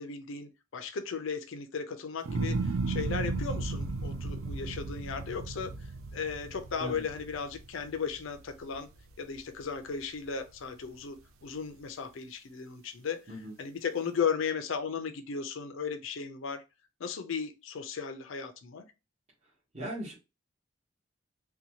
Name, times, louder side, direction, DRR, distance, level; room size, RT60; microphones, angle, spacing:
voice 1, 0.0-5.7 6.1-8.9 9.2-11.2 11.4-16.6 17.0-18.9, left 6 dB, 70° left, 0.5 m, -36 dB
sound 1, 2.3-8.6 9.0-9.6, right 3 dB, 80° right, 0.4 m, -35 dB
voice 2, 19.7-20.2, equal, 30° right, 0.9 m, -38 dB
2.7 x 2.2 x 2.8 m
head